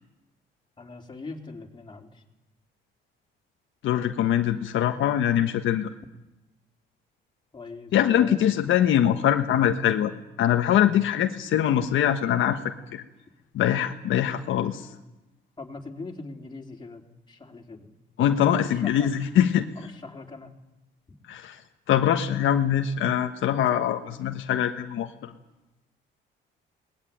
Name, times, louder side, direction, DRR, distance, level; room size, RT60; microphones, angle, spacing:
voice 1, 0.8-2.2 7.5-8.7 15.6-18.0 18.4-19.1 19.8-20.5, left 3 dB, 25° left, 0 dB, 3.8 m, -41 dB
voice 2, 3.8-5.9 7.9-10.1 10.4-12.6 12.9-13.0 13.5-14.8 18.2-19.7 21.3-21.6 21.9-25.3, left 10 dB, 80° left, 5 dB, 1.4 m, -23 dB
21.5 x 20.0 x 9.3 m, 0.97 s
cardioid pair, 90°, 20 cm